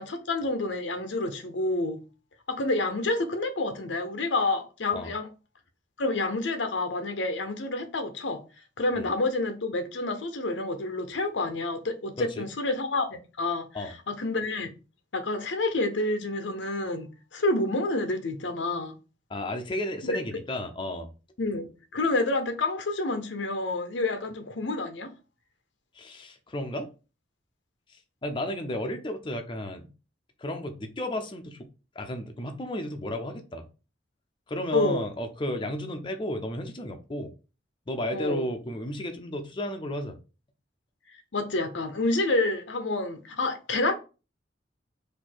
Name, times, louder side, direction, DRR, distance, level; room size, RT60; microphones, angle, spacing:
voice 1, 0.0-2.0 2.5-5.3 6.0-8.4 8.8-14.7 15.1-18.9 20.0-20.2 21.4-25.1 34.7-35.0 38.1-38.4 41.3-43.9, left 2 dB, 85° left, 0.8 m, -28 dB
voice 2, 19.3-21.1 26.0-26.9 28.2-29.9 30.4-31.7 32.0-33.7 34.5-37.3 37.9-40.2, left 1 dB, 25° left, 0.6 m, -33 dB
4.3 x 2.7 x 4.3 m
head